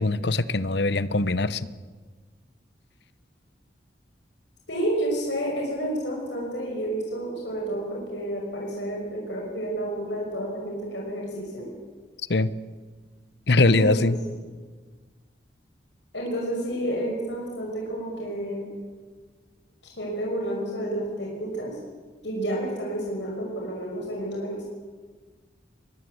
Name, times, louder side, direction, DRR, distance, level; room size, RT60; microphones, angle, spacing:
voice 1, 0.0-1.6 12.3-12.5 13.5-14.2, left 2 dB, 65° left, 16 dB, 0.9 m, -21 dB
voice 2, 4.7-11.7 13.7-14.0 14.4-14.5 16.1-18.7 20.0-21.8 22.2-24.6, right 1 dB, 85° left, -1 dB, 5.8 m, -30 dB
23.0 x 21.0 x 8.0 m, 1.4 s
head